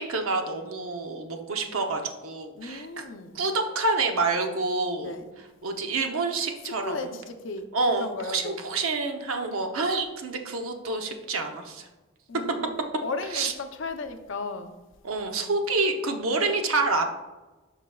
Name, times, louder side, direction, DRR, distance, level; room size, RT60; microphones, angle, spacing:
voice 1, 0.0-3.1 3.3-5.1 5.6-7.2 7.7-11.9 13.3-13.5 15.0-17.0, right 3 dB, 80° right, 0.8 m, -28 dB
voice 2, 2.6-3.4 5.0-5.3 6.7-7.6 8.0-8.6 12.3-14.7, left 3 dB, 60° left, 0.6 m, -35 dB
11.5 x 3.9 x 2.3 m
head